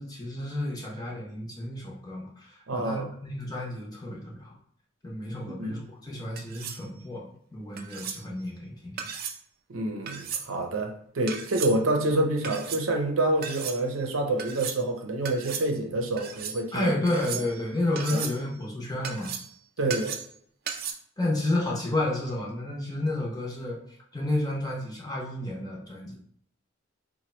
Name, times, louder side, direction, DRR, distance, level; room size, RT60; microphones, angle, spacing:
voice 1, 0.0-4.5 5.0-9.0 16.7-19.3 19.8-19.9 21.2-23.8 24.1-26.2, left 1 dB, 20° left, -3 dB, 0.7 m, -31 dB
voice 2, 2.7-3.1 5.5-5.7 9.7-16.9 17.3-17.4 18.1-18.2 19.8-20.2, right 2 dB, 85° right, 3 dB, 0.6 m, -27 dB
sound 1, 6.4-6.8 7.8-8.2 9.0-9.4 10.1-10.5 11.3-11.7 12.4-12.8 13.4-13.8 14.4-14.8 15.2-15.7 16.2-16.6 17.1-17.6 18.0-18.4 19.0-19.5 19.9-20.4 20.7-20.9, right 7 dB, 50° right, 0.4 m, -35 dB
3.0 x 2.2 x 4.2 m, 0.65 s
head